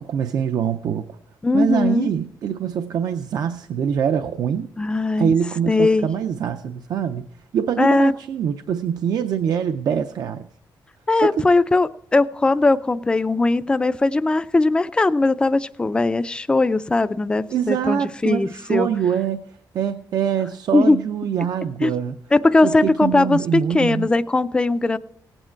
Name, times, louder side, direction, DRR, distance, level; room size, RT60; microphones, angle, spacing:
voice 1, 0.1-1.0 1.5-4.7 5.2-7.3 7.5-10.4 11.2-11.4 17.5-19.4 19.7-22.2 22.6-24.1, right 8 dB, 60° right, 8 dB, 0.5 m, -24 dB
voice 2, 1.4-2.1 4.8-5.3 5.7-6.1 7.8-8.1 11.1-18.9 20.7-21.0 21.8-21.9 22.3-25.0, left 2 dB, 10° left, 13 dB, 0.4 m, -19 dB
18.0 x 8.9 x 4.5 m, 0.71 s
wide cardioid pair, 170°, 8 cm